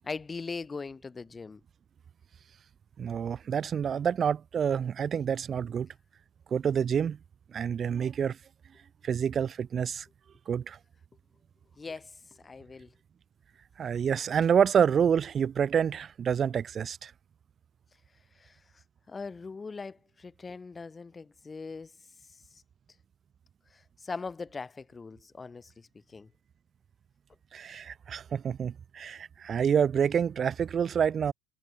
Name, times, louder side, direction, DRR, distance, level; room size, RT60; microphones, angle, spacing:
voice 1, 0.0-1.6 11.8-12.9 18.3-21.9 22.5-22.6 23.7-26.3, left 4 dB, 20° left, 3.3 m, -41 dB
voice 2, 3.0-5.9 6.5-7.2 7.5-8.4 9.0-10.1 10.5-10.8 13.8-17.1 27.5-31.3, right 7 dB, 35° right, 0.4 m, -27 dB
hypercardioid pair, 80°, 0 cm